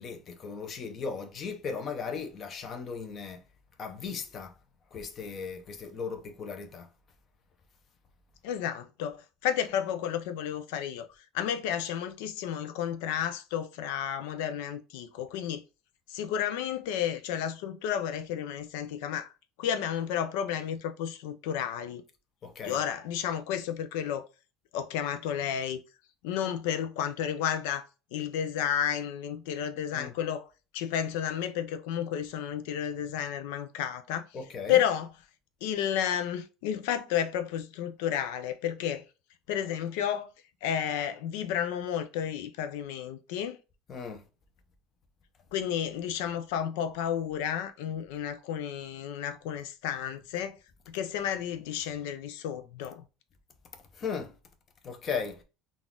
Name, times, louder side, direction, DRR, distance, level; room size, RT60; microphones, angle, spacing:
voice 1, 0.0-3.4 3.8-4.5 4.9-6.9 22.4-22.8 29.9-30.1 34.3-34.9 43.9-44.2 53.9-54.3 54.8-55.4, left 5 dB, 25° left, 0.6 m, -37 dB
voice 2, 8.4-9.2 9.4-11.1 11.3-15.6 16.1-19.3 19.6-22.0 22.6-24.2 24.7-25.8 26.2-30.5 30.7-34.2 34.7-35.1 35.6-39.0 39.5-40.3 40.6-43.6 45.5-50.6 50.9-53.0, left 9 dB, 80° left, 0.4 m, -31 dB
3.9 x 2.4 x 3.6 m
cardioid pair, 170°, 0 cm